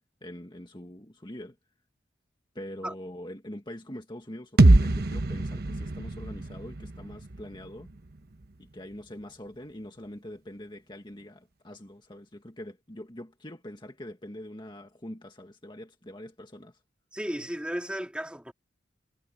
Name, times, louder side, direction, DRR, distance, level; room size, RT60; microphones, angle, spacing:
voice 1, 0.0-1.6 2.6-7.9 8.6-16.8, left 1 dB, 25° left, 1.8 m, -43 dB
sound 1, 4.6-8.5, right 2 dB, 60° right, 1.1 m, -24 dB
voice 2, 17.1-18.5, equal, 5° right, 3.3 m, -34 dB
head